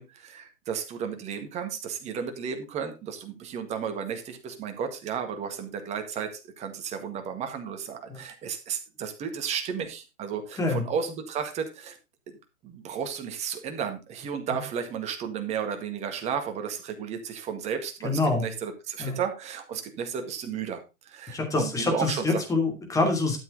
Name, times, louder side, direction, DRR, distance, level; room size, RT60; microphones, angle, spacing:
voice 1, 0.0-12.0 12.3-22.4, right 7 dB, 15° right, 6 dB, 1.8 m, -33 dB
voice 2, 18.0-18.5 19.0-19.2 21.3-23.4, left 3 dB, 10° left, 2 dB, 2.9 m, -26 dB
12.5 x 7.6 x 3.9 m, 0.27 s
hypercardioid pair, 140°, 42 cm